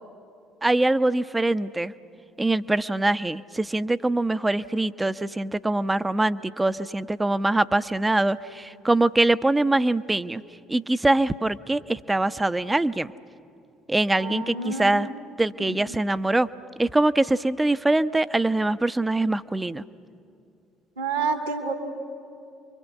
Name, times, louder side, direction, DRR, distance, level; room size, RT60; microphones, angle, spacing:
voice 1, 0.6-1.9 2.4-10.4 10.7-13.1 13.9-15.1 15.4-16.5 16.8-19.8, right 2 dB, 15° right, 13 dB, 0.8 m, -23 dB
voice 2, 14.2-15.1 15.6-15.8 21.0-21.7, right 4 dB, 80° right, 3 dB, 2.8 m, -29 dB
29.5 x 24.0 x 8.4 m, 2.6 s
figure-of-eight pair, 50°, 0 cm